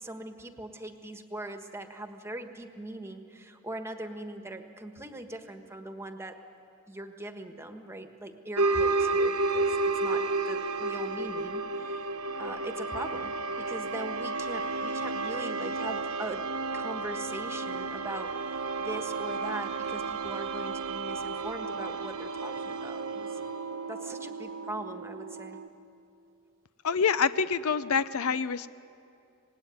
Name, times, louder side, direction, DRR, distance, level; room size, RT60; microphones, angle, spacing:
voice 1, 0.0-6.4 6.9-12.1 12.4-16.5 16.7-23.4 23.9-25.6, right 1 dB, 10° right, 6 dB, 1.4 m, -41 dB
sound 1, 8.6-25.7, right 3 dB, 70° right, 1.0 m, -32 dB
voice 2, 26.8-28.7, left 6 dB, 65° left, 15 dB, 0.6 m, -26 dB
25.5 x 19.0 x 9.5 m, 2.6 s
head